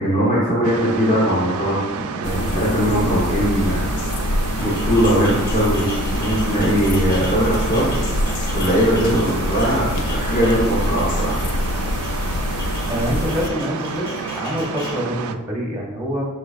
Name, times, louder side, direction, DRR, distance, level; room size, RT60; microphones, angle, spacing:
voice 1, 0.0-3.9 4.6-11.4, equal, 35° left, -6 dB, 0.9 m, -20 dB
sound 1, 0.6-15.4, right 5 dB, 70° right, 0.3 m, -30 dB
sound 2, 2.2-13.5, left 2 dB, 80° left, 0.4 m, -25 dB
sound 3, 4.6-15.0, left 1 dB, 20° left, 1.2 m, -37 dB
voice 2, 12.9-14.1 14.4-16.3, equal, 5° right, -4 dB, 0.8 m, -25 dB
5.3 x 3.9 x 2.4 m, 1.1 s
head